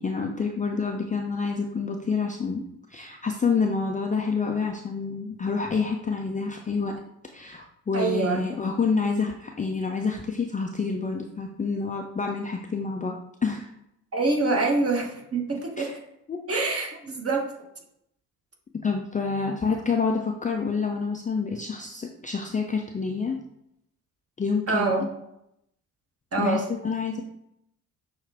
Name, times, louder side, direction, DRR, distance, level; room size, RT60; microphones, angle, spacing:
voice 1, 0.0-2.6 2.9-7.0 7.3-13.1 13.4-13.7 15.8-15.9 16.3-16.4 18.8-23.4 24.4-24.9 26.4-27.2, left 4 dB, 15° left, 1 dB, 0.5 m, -28 dB
voice 2, 7.9-8.4 14.1-15.9 16.5-17.5 24.7-25.0 26.3-26.6, right 3 dB, 30° right, 1 dB, 1.3 m, -25 dB
6.1 x 2.3 x 3.5 m, 0.80 s
figure-of-eight pair, 45°, 46 cm